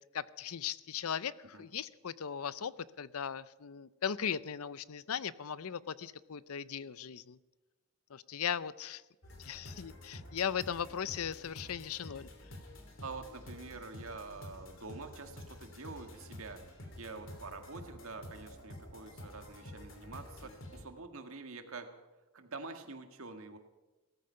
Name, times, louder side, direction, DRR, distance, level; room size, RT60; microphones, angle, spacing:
voice 1, 0.1-1.3 1.6-2.7 3.0-7.4 8.1-9.0 9.4-12.3, left 8 dB, 85° left, 18 dB, 0.6 m, -38 dB
sound 1, 9.2-20.8, left 1 dB, 60° left, 3.0 m, -50 dB
voice 2, 13.0-21.9 22.3-23.6, right 3 dB, 75° right, 6 dB, 1.8 m, -46 dB
17.5 x 14.0 x 5.6 m, 1.1 s
head